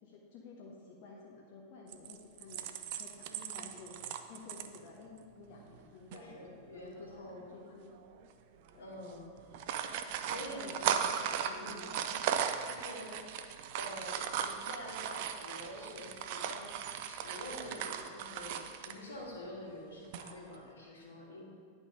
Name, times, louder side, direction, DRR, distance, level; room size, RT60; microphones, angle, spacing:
voice 1, 0.0-3.9 4.3-8.0 8.7-8.9 10.3-12.1, left 3 dB, 45° left, -2 dB, 0.8 m, -53 dB
sound 1, 1.9-4.8 5.2-5.3 5.6-5.8 6.1-6.2 7.2-7.5 8.1-8.3 8.5-8.7 9.4-19.0 20.0-20.5, right 8 dB, 50° right, 0.4 m, -37 dB
voice 2, 3.3-3.9 6.1-7.5 8.8-9.3 10.2-11.0 11.5-11.8 12.7-13.1 13.7-16.7 17.0-21.4, left 1 dB, 70° left, -4 dB, 1.8 m, -47 dB
10.5 x 3.7 x 3.8 m, 2.1 s
figure-of-eight pair, 90°, 0 cm